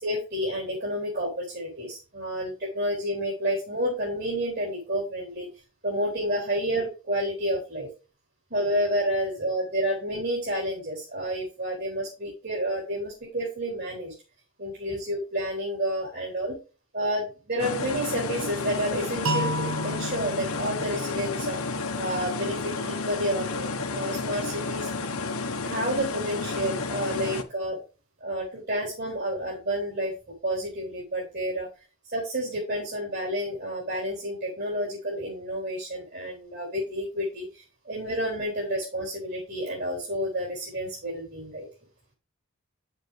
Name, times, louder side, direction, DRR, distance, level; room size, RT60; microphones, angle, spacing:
voice 1, 0.0-5.5 5.8-7.9 8.5-14.1 14.6-16.6 16.9-21.6 22.0-24.9 25.6-27.8 28.2-30.1 30.4-31.7 32.0-41.7, equal, 50° right, -4 dB, 4.0 m, -30 dB
sound 1, 17.6-27.4, left 3 dB, 80° left, 1.4 m, -31 dB
sound 2, 19.2-22.2, right 1 dB, 75° right, 1.1 m, -33 dB
9.4 x 7.5 x 3.4 m, 0.32 s
head